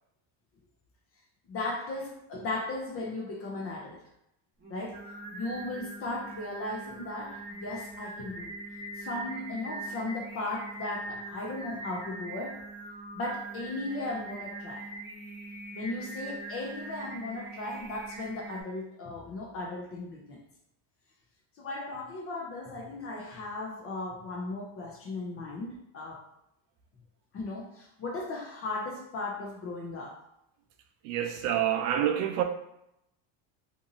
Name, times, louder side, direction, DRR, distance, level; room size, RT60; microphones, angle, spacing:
voice 1, 1.5-4.0 4.7-5.0 5.3-8.5 8.9-12.6 13.1-14.9 15.7-20.4 21.6-26.2 27.3-30.2, left 2 dB, 30° left, -1 dB, 0.4 m, -36 dB
Singing, 4.6-18.6, right 2 dB, 20° right, 0.8 m, -42 dB
voice 2, 31.0-32.4, right 10 dB, 75° right, 6 dB, 0.6 m, -27 dB
2.8 x 2.6 x 2.6 m, 0.81 s
cardioid pair, 160°, 48 cm